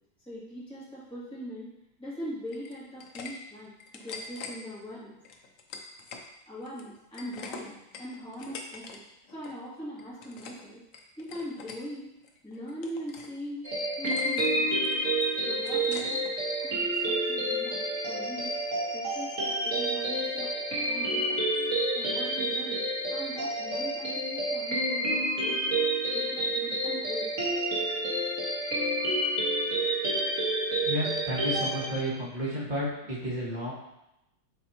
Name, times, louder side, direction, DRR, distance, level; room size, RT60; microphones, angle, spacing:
voice 1, 0.3-1.7 2.0-5.2 6.5-9.0 9.3-10.8 11.2-12.1 12.4-13.6 13.9-14.9 15.4-16.3 16.6-18.5 18.9-21.4 21.9-25.8 26.1-27.3, equal, 5° left, -10 dB, 2.2 m, -41 dB
sound 1, 2.5-3.3 3.6-4.5 5.2-6.3 6.6-9.0 9.2-9.6 10.0-10.6 10.9-11.8 12.2-13.3 13.6-13.7 14.1-14.5 14.8-16.3, left 4 dB, 75° left, 0.7 m, -43 dB
sound 2, 13.6-32.0, right 1 dB, 40° right, 1.7 m, -29 dB
voice 2, 30.8-33.7, equal, 25° right, -8 dB, 1.7 m, -32 dB
7.8 x 4.1 x 2.9 m, 0.86 s
omnidirectional pair, 2.1 m